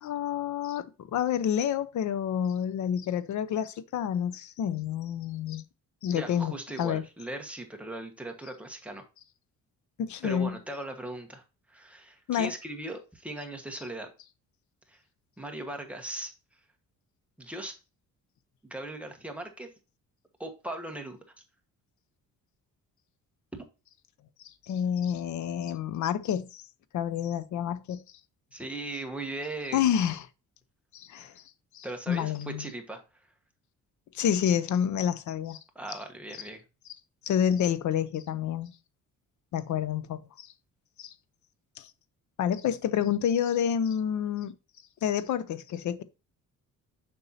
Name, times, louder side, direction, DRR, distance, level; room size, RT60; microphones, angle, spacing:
voice 1, 0.0-5.6 6.0-6.5 6.8-7.0 10.0-10.6 12.3-12.5 24.7-26.6 26.9-28.0 29.7-30.3 30.9-31.3 31.7-32.7 34.1-35.6 37.2-38.7 39.5-40.5 41.0-41.1 41.8-41.9 42.4-44.5 45.0-46.0, left 9 dB, 60° left, 0.7 m, -29 dB
voice 2, 6.1-9.0 10.2-11.4 11.7-14.1 14.9-15.0 15.4-16.3 17.4-17.7 18.7-19.7 20.4-21.2 23.5-23.7 28.5-29.9 31.2-31.3 31.8-33.0 35.7-36.6, right 1 dB, 5° right, 1.2 m, -38 dB
6.9 x 5.4 x 2.7 m
cardioid pair, 135°, 33 cm